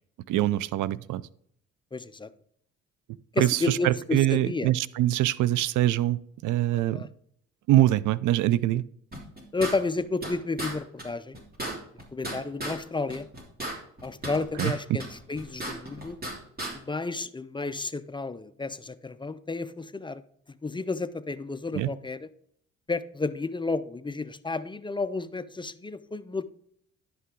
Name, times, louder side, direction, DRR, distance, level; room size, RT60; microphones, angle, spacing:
voice 1, 0.3-1.2 3.4-7.0 7.7-8.8 14.6-14.7 21.7-21.9, right 14 dB, 80° right, 19 dB, 0.5 m, -24 dB
voice 2, 1.9-2.3 3.3-4.7 6.7-7.1 9.5-11.4 12.1-13.3 14.0-16.2 16.7-20.2 20.6-22.3 22.9-26.4, left 3 dB, 15° left, 13 dB, 0.4 m, -31 dB
sound 1, 9.1-10.3 10.6-10.7 11.0-11.1 11.3-12.8 13.1-14.7 15.0-16.3 16.6-16.7, right 1 dB, 30° right, 3.0 m, -34 dB
10.5 x 5.7 x 3.7 m, 0.68 s
cardioid pair, 90°, 30 cm